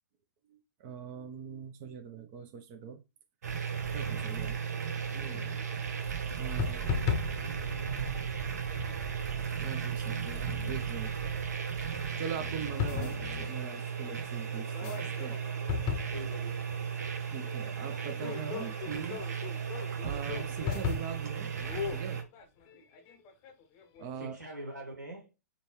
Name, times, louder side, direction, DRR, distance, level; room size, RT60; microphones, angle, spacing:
voice 1, 0.5-3.0 3.9-4.6 5.1-5.9 6.4-7.1 9.5-11.1 11.8-11.9 12.2-13.1 13.5-15.4 15.8-15.9 17.3-19.2 20.0-21.5 21.9-22.2 22.7-22.8 24.0-24.3, right 7 dB, 35° right, 0.6 m, -41 dB
sound 1, 3.4-22.2, right 7 dB, 60° right, 0.9 m, -35 dB
sound 2, 4.6-4.7 4.9-5.7 6.3-8.4 8.8-9.1 9.5-9.6 10.1-11.0 11.5-11.7 12.0-14.3 14.6-24.1, left 7 dB, 30° left, 0.7 m, -38 dB
voice 2, 16.1-17.0 24.1-25.3, right 1 dB, 85° right, 1.0 m, -43 dB
5.2 x 2.2 x 3.0 m
figure-of-eight pair, 115°, 10 cm